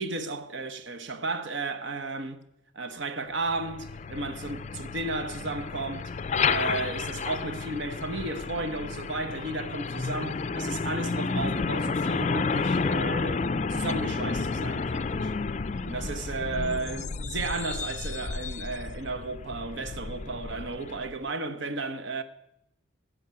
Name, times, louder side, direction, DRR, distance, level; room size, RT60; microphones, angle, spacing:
voice 1, 0.0-2.4 2.7-6.1 6.5-15.3 15.8-22.2, right 3 dB, 65° right, 1.0 m, -34 dB
Truck, 3.5-21.2, left 4 dB, 35° left, 0.4 m, -31 dB
14.0 x 7.2 x 9.4 m
head